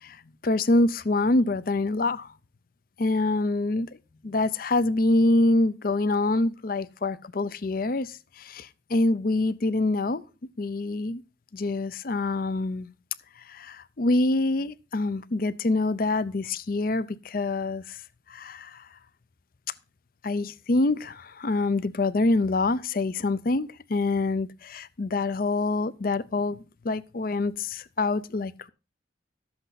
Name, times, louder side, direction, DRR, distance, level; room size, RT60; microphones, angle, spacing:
voice 1, 0.0-2.3 3.0-3.9 4.2-10.2 10.6-11.2 11.5-12.9 13.5-18.0 18.3-18.9 20.2-28.7, left 2 dB, 45° left, 0.5 m, -26 dB
12.0 x 7.8 x 4.0 m
head